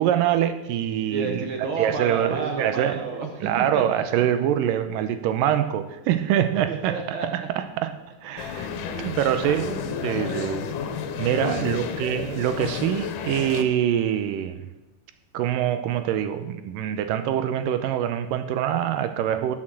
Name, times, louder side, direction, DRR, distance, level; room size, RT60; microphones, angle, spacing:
voice 1, 0.0-1.5 1.8-3.0 3.4-6.9 7.3-7.9 8.2-8.7 9.0-10.7 11.2-14.6 15.3-19.6, right 10 dB, 85° right, 9 dB, 2.3 m, -24 dB
voice 2, 1.1-4.2 6.7-7.3 8.5-9.5 11.3-12.0, right 4 dB, 65° right, 3 dB, 1.3 m, -32 dB
sound 1, 8.4-13.6, left 7 dB, 75° left, 2.5 m, -31 dB
11.5 x 6.5 x 7.5 m, 1.0 s
omnidirectional pair, 3.9 m